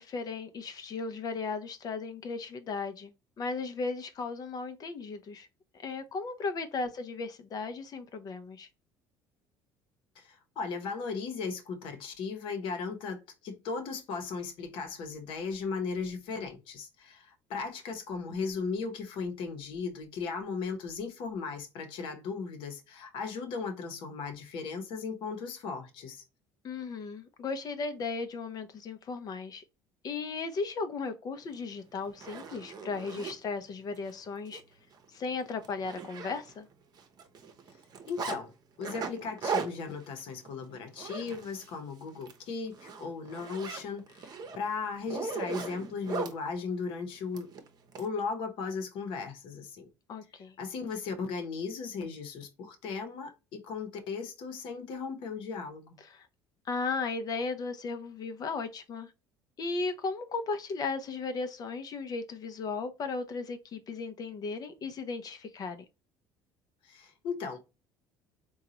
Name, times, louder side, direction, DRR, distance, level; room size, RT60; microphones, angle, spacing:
voice 1, 0.0-3.1 3.4-5.5 5.7-8.7 26.6-29.6 30.0-34.6 35.1-36.7 50.1-50.5 56.0-56.3 56.7-59.1 59.6-65.8, left 4 dB, 45° left, 0.6 m, -36 dB
voice 2, 10.2-26.2 38.1-38.5 38.8-47.5 48.0-49.9 50.6-55.9 66.8-67.6, left 5 dB, 65° left, 0.9 m, -37 dB
Zipper (clothing), 31.5-31.6 32.1-33.4 34.0-34.1 34.5-34.6 34.9-35.1 35.4-36.7 37.0-38.4 38.8-41.8 42.1-42.4 42.7-46.4 47.3-48.1, right 5 dB, 45° right, 0.8 m, -38 dB
3.7 x 2.3 x 2.8 m
supercardioid pair, 85°, 9 cm